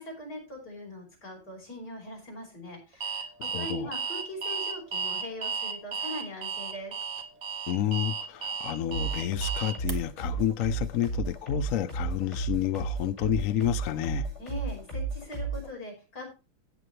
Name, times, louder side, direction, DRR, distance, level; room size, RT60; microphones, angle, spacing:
voice 1, 0.0-3.3 3.6-6.9 14.4-16.3, left 1 dB, 50° left, 5.8 m, -41 dB
Alarm, 3.0-9.9, right 6 dB, 50° right, 1.4 m, -33 dB
voice 2, 3.4-3.9 7.7-14.3, left 11 dB, 70° left, 0.7 m, -30 dB
sound 1, 8.9-15.7, right 4 dB, 35° left, 7.8 m, -33 dB
17.0 x 6.8 x 3.2 m
omnidirectional pair, 2.2 m